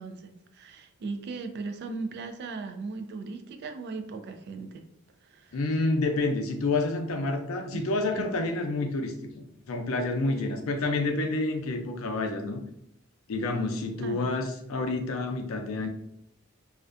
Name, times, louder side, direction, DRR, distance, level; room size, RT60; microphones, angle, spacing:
voice 1, 0.0-4.8 5.2-5.6 7.7-7.8 8.1-8.3 14.0-14.2, right 4 dB, 55° right, 6 dB, 0.3 m, -38 dB
voice 2, 5.5-12.6 13.3-15.9, left 2 dB, 90° left, 4 dB, 0.4 m, -29 dB
2.4 x 2.2 x 2.4 m, 0.75 s
head